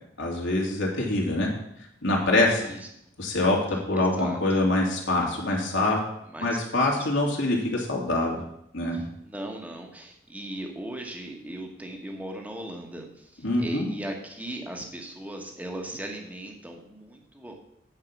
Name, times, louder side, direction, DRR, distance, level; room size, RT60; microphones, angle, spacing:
voice 1, 0.2-1.5 2.0-2.7 3.2-6.0 6.4-8.4 8.7-9.0 13.4-13.9, left 2 dB, 75° left, -2 dB, 2.3 m, -24 dB
voice 2, 2.5-2.9 3.9-4.4 6.3-6.5 6.8-7.1 8.9-17.6, right 1 dB, 10° right, 2 dB, 1.3 m, -38 dB
9.2 x 4.8 x 7.1 m, 0.76 s
head